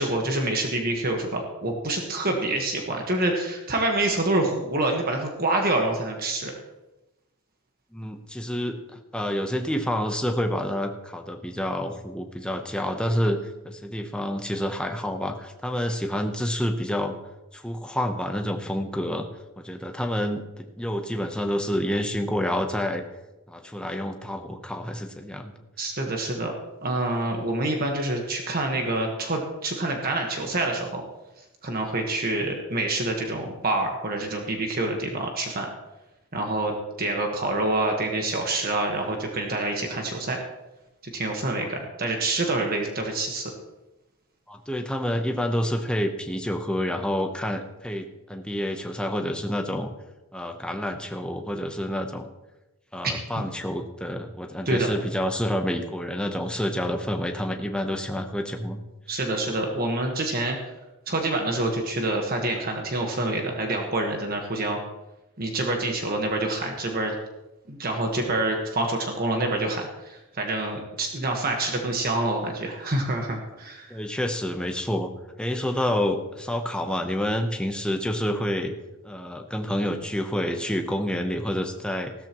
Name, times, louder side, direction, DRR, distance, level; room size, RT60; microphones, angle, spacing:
voice 1, 0.0-6.5 25.8-26.5 26.8-31.0 31.6-35.7 36.3-40.4 41.1-43.5 53.0-53.4 54.6-54.9 59.1-60.6 61.1-64.8 65.4-67.1 67.7-73.9, right 2 dB, 40° right, 2 dB, 1.4 m, -27 dB
voice 2, 7.9-13.4 13.6-17.1 17.5-19.3 19.6-23.0 23.5-25.5 41.5-41.7 44.5-49.9 50.3-52.3 52.9-58.8 73.9-75.1 75.4-78.7 79.0-82.1, equal, 5° left, 4 dB, 0.8 m, -28 dB
15.0 x 13.5 x 3.0 m, 1.0 s
head